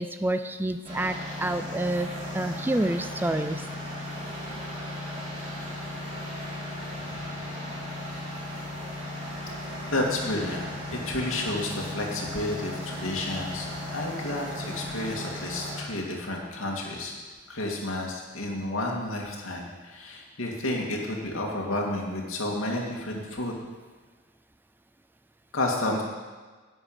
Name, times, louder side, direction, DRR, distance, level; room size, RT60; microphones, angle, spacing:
voice 1, 0.0-3.7, right 1 dB, 10° right, 9 dB, 0.4 m, -28 dB
sound 1, 0.8-15.8, left 1 dB, 35° right, 4.3 m, -36 dB
voice 2, 9.9-17.1 17.5-23.5 25.5-26.0, left 1 dB, 75° left, -1 dB, 2.6 m, -31 dB
11.5 x 8.1 x 9.0 m, 1.4 s
head